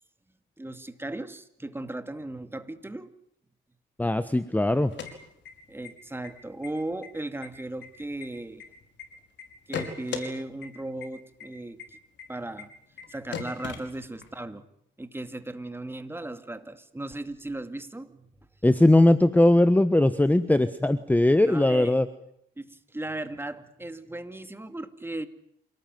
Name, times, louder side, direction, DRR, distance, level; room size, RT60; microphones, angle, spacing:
voice 1, 0.6-3.1 5.7-8.6 9.7-12.0 12.3-12.7 13.1-14.7 15.0-18.3 21.4-22.0 22.6-25.3, right 2 dB, 10° right, 10 dB, 2.4 m, -37 dB
voice 2, 4.0-4.9 18.6-22.1, left 1 dB, 10° left, 13 dB, 1.3 m, -20 dB
sound 1, 4.8-5.9 6.2-6.3 6.6-7.1 7.4-9.0 9.4-10.3 10.6-10.7 11.0-11.1 11.4-11.5 11.8-11.9 12.2-12.3 12.6-12.7 13.0-13.1 13.3-14.4, left 7 dB, 65° left, 5.4 m, -37 dB
28.0 x 19.0 x 9.4 m, 0.72 s
cardioid pair, 90°, 20 cm